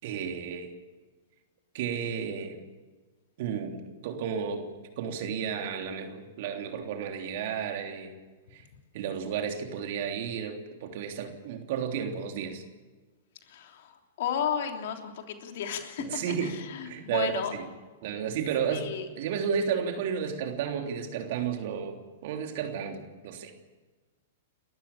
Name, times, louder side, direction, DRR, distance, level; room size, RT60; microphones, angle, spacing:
voice 1, 0.0-0.7 1.7-2.6 3.4-4.7 5.0-8.1 8.5-8.6 8.9-12.6 16.0-16.5 16.8-17.6 18.0-18.9 19.2-22.0 22.2-23.5, right 7 dB, 60° right, 4 dB, 3.3 m, -32 dB
voice 2, 13.5-17.5 18.7-19.1, left 8 dB, 65° left, 4 dB, 3.3 m, -34 dB
30.0 x 14.0 x 7.3 m, 1.3 s
hypercardioid pair, 115°, 0 cm